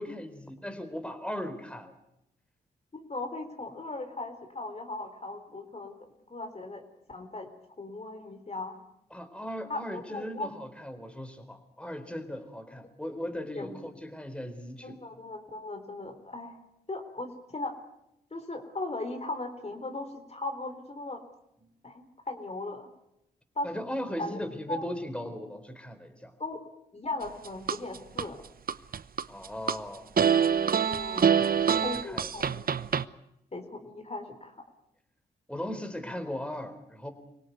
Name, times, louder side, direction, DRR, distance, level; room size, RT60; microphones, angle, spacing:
voice 1, 0.0-1.9 9.1-15.0 21.6-21.7 23.6-26.3 29.3-30.1 31.2-32.5 35.5-37.1, left 1 dB, 5° left, 7 dB, 4.1 m, -38 dB
voice 2, 2.9-6.0 6.3-6.8 7.1-7.5 7.8-8.8 9.7-10.5 13.5-13.8 14.8-16.6 16.9-17.7 18.3-21.2 21.8-22.9 23.6-23.9 24.2-24.4 24.7-24.9 26.4-26.6 26.9-28.4 30.8-31.5 31.8-32.6 33.5-34.6, left 2 dB, 35° left, 6 dB, 4.0 m, -38 dB
sound 1, 27.2-28.3 28.7-29.8 30.2-33.1, right 7 dB, 55° right, 0.9 m, -25 dB
25.0 x 17.5 x 9.5 m, 0.83 s
supercardioid pair, 50°, 18 cm